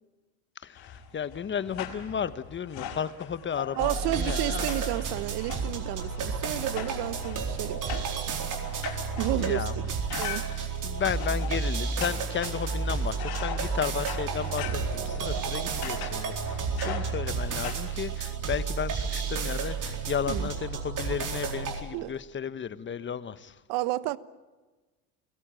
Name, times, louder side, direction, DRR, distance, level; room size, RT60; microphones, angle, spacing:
voice 1, 0.6-4.7 9.3-9.7 10.5-23.6, left 7 dB, 25° left, 1.2 m, -34 dB
sound 1, 0.8-17.8, left 9 dB, 55° left, 5.6 m, -41 dB
sound 2, 3.8-21.8, right 5 dB, 40° right, 4.2 m, -31 dB
voice 2, 3.8-8.0 9.2-10.4 16.8-17.0 20.3-20.5 21.9-22.1 23.7-24.2, right 17 dB, 60° right, 1.2 m, -32 dB
29.5 x 17.5 x 9.1 m
hypercardioid pair, 90°, 47 cm